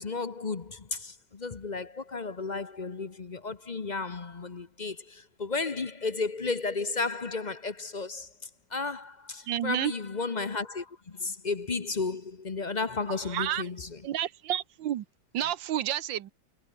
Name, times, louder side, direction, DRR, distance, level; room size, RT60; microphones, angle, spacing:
voice 1, 0.0-14.0, left 4 dB, 35° left, 0.8 m, -33 dB
voice 2, 9.5-9.9 13.3-13.6 14.0-15.1 15.3-16.3, right 11 dB, 85° right, 1.7 m, -30 dB
omnidirectional pair, 2.0 m